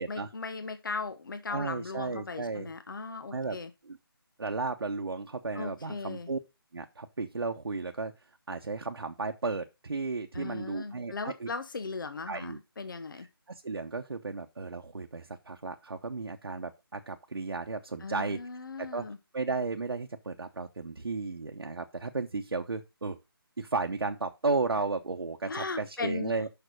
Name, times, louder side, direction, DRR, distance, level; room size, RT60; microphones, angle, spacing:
voice 1, 0.0-3.7 5.5-6.3 10.3-13.3 18.0-19.2 25.5-26.3, left 4 dB, 55° left, 10 dB, 1.0 m, -38 dB
voice 2, 1.5-2.7 3.3-3.6 3.9-4.0 4.4-6.4 6.7-8.1 8.5-11.5 12.3-12.6 13.5-18.4 18.8-19.0 19.3-23.2 23.6-26.5, right 3 dB, 80° right, 3 dB, 1.1 m, -34 dB
6.8 x 6.0 x 6.2 m, 0.26 s
figure-of-eight pair, 165°, 13 cm